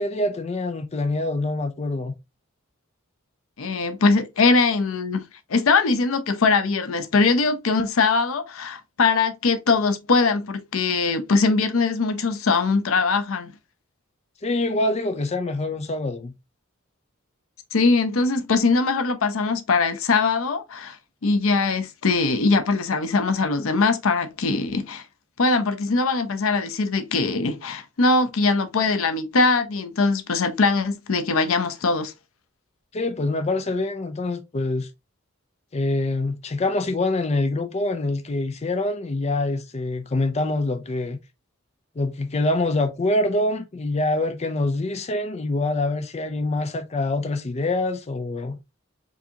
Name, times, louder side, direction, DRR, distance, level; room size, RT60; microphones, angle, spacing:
voice 1, 0.0-2.2 14.4-16.3 32.9-34.9 35.7-41.2 42.0-48.6, left 2 dB, 30° left, 0.4 m, -25 dB
voice 2, 3.6-5.2 5.5-13.5 17.7-21.0 21.2-25.0 25.4-32.1, left 4 dB, 85° left, 0.6 m, -21 dB
4.7 x 2.7 x 2.8 m
head